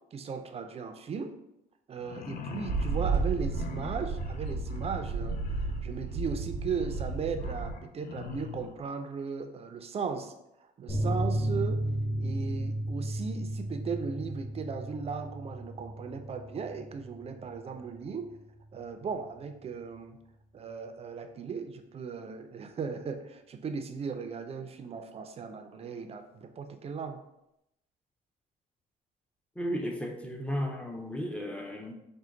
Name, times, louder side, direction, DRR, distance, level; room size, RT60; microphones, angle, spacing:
voice 1, 0.1-1.3 1.9-10.3 10.6-11.8 12.2-18.3 18.7-20.2 20.5-27.2, right 5 dB, 35° right, 7 dB, 0.5 m, -37 dB
sound 1, 2.0-8.8, left 7 dB, 60° left, 0.5 m, -44 dB
sound 2, 2.7-7.7, right 4 dB, 85° right, 0.6 m, -32 dB
sound 3, 10.9-18.0 18.2-18.3 18.7-18.8, right 1 dB, 30° left, 1.2 m, -34 dB
voice 2, 29.6-31.9, equal, 5° left, 2 dB, 0.6 m, -34 dB
4.4 x 2.2 x 3.8 m, 0.84 s
cardioid pair, 105°, 17 cm